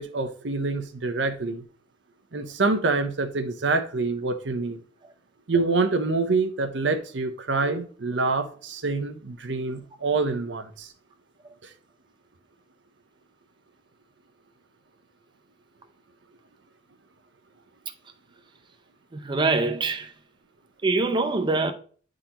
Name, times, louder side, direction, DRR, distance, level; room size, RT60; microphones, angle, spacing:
voice 1, 0.0-1.6 2.3-4.8 5.5-10.9, right 3 dB, 85° right, 0.7 m, -26 dB
voice 2, 19.1-20.1 20.8-21.7, right 3 dB, 25° right, 0.5 m, -24 dB
9.9 x 3.8 x 2.9 m
head